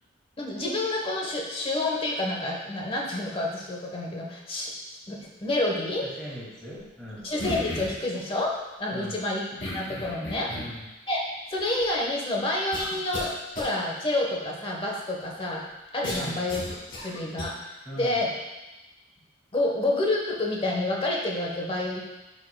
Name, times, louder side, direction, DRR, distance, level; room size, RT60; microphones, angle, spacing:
voice 1, 0.4-6.1 7.2-10.5 11.1-11.2 11.5-15.6 15.9-16.6 16.9-17.6 18.0-18.3 19.5-22.0, left 2 dB, 30° left, -1 dB, 1.1 m, -28 dB
voice 2, 6.0-7.3 8.9-9.2 10.5-10.9 16.1-16.4 17.9-18.2, equal, 5° left, -8 dB, 2.2 m, -40 dB
sound 1, 7.4-8.1 9.6-10.8 11.6-11.7 12.7-13.3 13.6-13.7 16.0-17.5, left 1 dB, 65° left, 1.9 m, -34 dB
9.3 x 5.6 x 2.3 m, 1.0 s
head